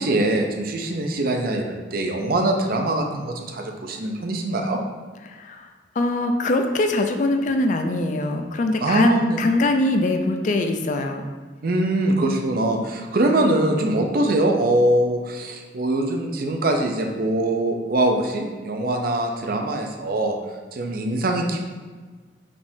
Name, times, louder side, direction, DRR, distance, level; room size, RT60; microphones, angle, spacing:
voice 1, 0.0-4.8 8.8-9.4 11.6-20.4 20.7-21.6, right 1 dB, 50° right, 3 dB, 0.5 m, -23 dB
voice 2, 5.2-5.7 6.0-11.3, left 2 dB, 40° left, 5 dB, 0.3 m, -22 dB
5.0 x 3.5 x 2.7 m, 1.4 s
head